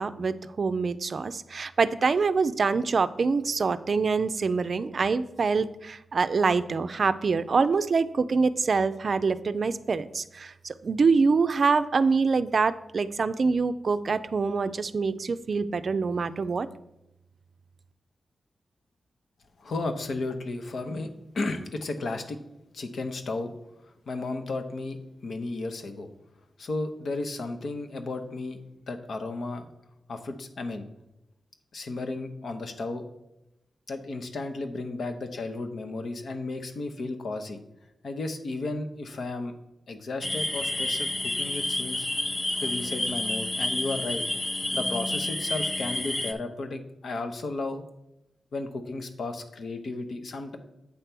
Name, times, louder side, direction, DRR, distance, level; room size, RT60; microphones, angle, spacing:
voice 1, 0.0-16.7, right 4 dB, 60° right, 13 dB, 0.4 m, -25 dB
voice 2, 19.6-21.1 21.3-22.4 22.7-23.5 24.1-25.0 25.2-26.1 26.6-28.6 28.9-29.7 30.1-30.9 31.7-33.1 33.9-37.6 38.0-39.6 39.9-42.1 42.6-44.2 44.7-47.8 48.5-50.6, left 3 dB, 70° left, 6 dB, 0.9 m, -33 dB
sound 1, 40.2-46.3, left 1 dB, 30° left, 0.6 m, -29 dB
8.3 x 3.4 x 5.9 m, 0.89 s
cardioid pair, 65°, 0 cm